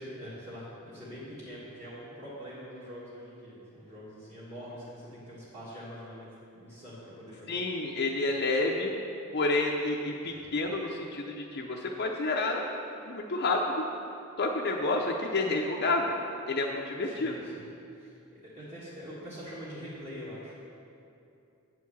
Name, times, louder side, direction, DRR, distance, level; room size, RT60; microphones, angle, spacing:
voice 1, 0.0-6.3 6.5-7.6 10.3-10.5 17.0-17.6 18.0-20.7, equal, 30° right, -10 dB, 1.7 m, -44 dB
voice 2, 7.5-8.9 9.3-12.7 13.0-13.6 14.4-16.2 16.5-17.3, left 2 dB, 50° left, 0 dB, 0.6 m, -29 dB
8.4 x 4.6 x 7.1 m, 2.7 s
head